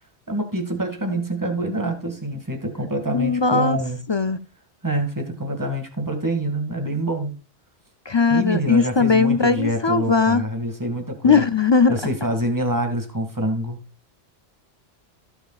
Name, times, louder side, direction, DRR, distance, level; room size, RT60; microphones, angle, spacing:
voice 1, 0.3-4.0 4.8-7.3 8.3-11.4 11.9-13.8, right 1 dB, 15° right, 2.2 m, -26 dB
voice 2, 3.1-3.8 4.1-4.4 8.1-10.5 11.2-12.0, left 5 dB, 50° left, 0.3 m, -18 dB
16.5 x 7.2 x 2.4 m
omnidirectional pair, 1.2 m